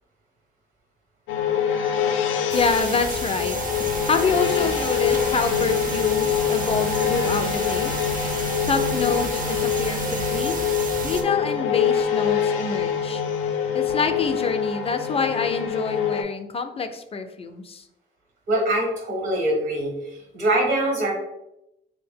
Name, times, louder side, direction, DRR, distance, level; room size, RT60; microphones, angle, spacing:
sound 1, 1.3-16.2, left 7 dB, 90° left, 0.4 m, -25 dB
voice 1, 2.5-3.6 4.0-7.9 8.7-10.6 11.0-13.2 13.7-17.8, left 4 dB, 30° left, 8 dB, 0.4 m, -26 dB
sound 2, 2.5-11.2, right 4 dB, 45° right, 0.5 m, -32 dB
voice 2, 18.5-19.9 20.3-21.1, right 1 dB, 75° right, -1 dB, 1.1 m, -23 dB
2.8 x 2.7 x 3.6 m, 0.86 s
cardioid pair, 90°, 20 cm